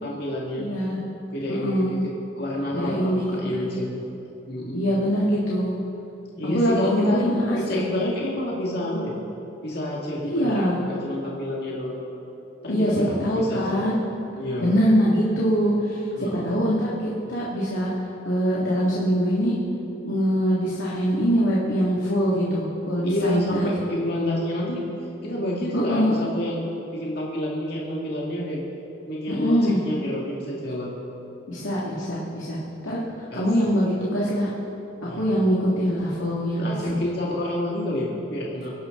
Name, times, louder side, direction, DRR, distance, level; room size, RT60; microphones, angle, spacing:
voice 1, 0.0-0.7 1.3-2.1 2.4-3.9 4.5-4.8 6.4-7.2 7.5-9.1 9.6-12.0 12.6-13.8 14.4-14.7 16.2-16.5 23.0-24.8 25.2-26.6 26.9-28.6 29.1-30.9 33.3-33.5 35.0-35.2 36.6-38.7, left 1 dB, 55° left, -4 dB, 2.1 m, -28 dB
voice 2, 0.6-1.0 1.5-1.9 2.7-3.8 4.7-5.7 6.5-7.8 10.2-10.8 12.7-14.0 14.6-17.9 18.3-19.6 20.0-23.7 25.7-26.2 29.3-29.8 31.5-32.6 32.8-33.0 33.3-34.5 35.2-36.6 36.9-37.0, equal, 85° left, -6 dB, 2.3 m, -23 dB
23.5 x 11.5 x 3.9 m, 2.9 s
head